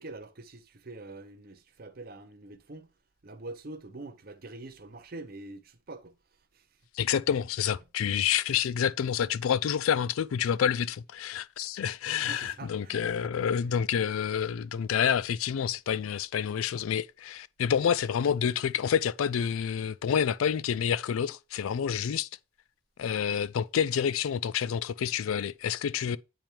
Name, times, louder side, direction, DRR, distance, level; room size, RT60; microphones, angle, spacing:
voice 1, 0.0-2.9 3.2-6.2 6.5-6.8 12.2-13.3 13.9-14.1, right 2 dB, 45° right, 0.7 m, -45 dB
voice 2, 6.9-22.3 23.0-26.2, left 8 dB, 80° left, 0.4 m, -28 dB
8.9 x 3.5 x 4.4 m
head